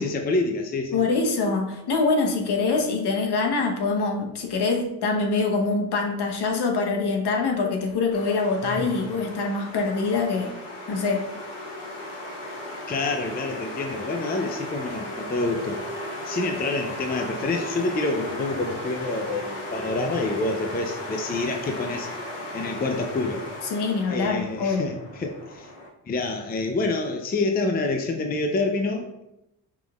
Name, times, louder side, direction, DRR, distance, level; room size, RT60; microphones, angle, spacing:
voice 1, 0.0-1.1 8.6-8.9 12.9-15.8 16.2-22.1 22.5-23.4 24.1-25.7 26.0-29.2, left 3 dB, 20° left, 4 dB, 0.5 m, -27 dB
voice 2, 0.9-10.5 10.9-11.2 23.7-24.9, left 4 dB, 50° left, 2 dB, 1.1 m, -24 dB
sound 1, 8.1-25.9, left 1 dB, 80° left, 1.2 m, -36 dB
5.9 x 3.4 x 2.4 m, 0.87 s
hypercardioid pair, 55°, 50 cm